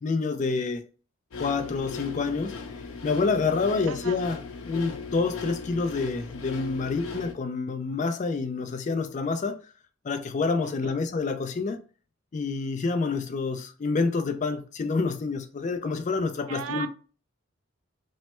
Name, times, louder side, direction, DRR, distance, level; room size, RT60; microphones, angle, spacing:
voice 1, 0.0-0.8 1.4-2.6 3.0-4.4 4.6-9.6 10.0-11.8 12.3-16.9, left 4 dB, 35° left, 0.3 m, -28 dB
sound 1, 1.3-7.3, left 4 dB, 90° left, 0.5 m, -38 dB
voice 2, 10.6-11.0 16.5-16.9, right 9 dB, 85° right, 0.4 m, -37 dB
3.1 x 2.1 x 2.9 m
head